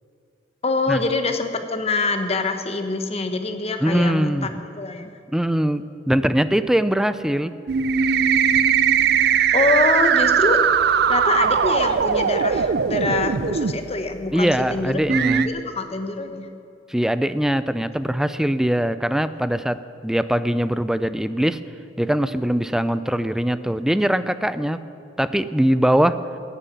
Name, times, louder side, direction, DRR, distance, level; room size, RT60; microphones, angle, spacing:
voice 1, 0.6-4.5 4.8-5.2 9.5-10.6 11.1-15.0 15.4-16.5, left 3 dB, 35° left, 7 dB, 1.0 m, -24 dB
voice 2, 3.8-4.5 5.3-7.5 14.3-15.5 16.9-21.6 22.0-24.8 25.2-26.2, equal, 5° right, 13 dB, 0.4 m, -21 dB
sound 1, 7.7-13.7 14.5-14.6 15.1-15.5, right 7 dB, 60° right, 0.5 m, -19 dB
14.5 x 8.3 x 9.2 m, 2.5 s
head